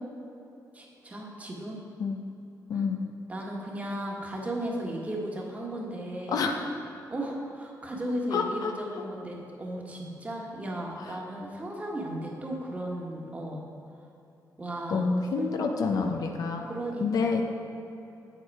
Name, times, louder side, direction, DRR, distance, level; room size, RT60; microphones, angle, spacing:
voice 1, 0.7-1.8 2.7-2.8 3.3-6.4 7.1-13.6 14.6-15.0 15.4-15.5 16.7-17.4, right 1 dB, 20° right, -2 dB, 1.5 m, -35 dB
voice 2, 8.3-8.7 10.9-11.2 14.9-16.7 17.0-17.4, left 4 dB, 65° left, 3 dB, 0.8 m, -28 dB
8.2 x 7.7 x 4.8 m, 2.9 s
cardioid pair, 125°, 7 cm